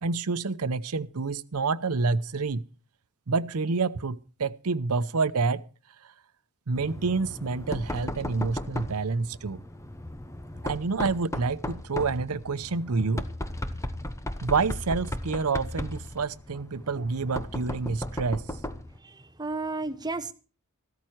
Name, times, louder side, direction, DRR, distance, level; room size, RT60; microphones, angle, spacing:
voice 1, 0.0-2.6 3.3-5.6 6.0-6.1 6.7-9.6 10.6-13.2 14.4-18.5, right 4 dB, 85° right, 0.7 m, -28 dB
Knock, 6.7-19.0, left 1 dB, 15° left, 0.9 m, -36 dB
voice 2, 18.9-20.3, right 3 dB, 20° right, 1.0 m, -33 dB
14.5 x 13.5 x 4.5 m
head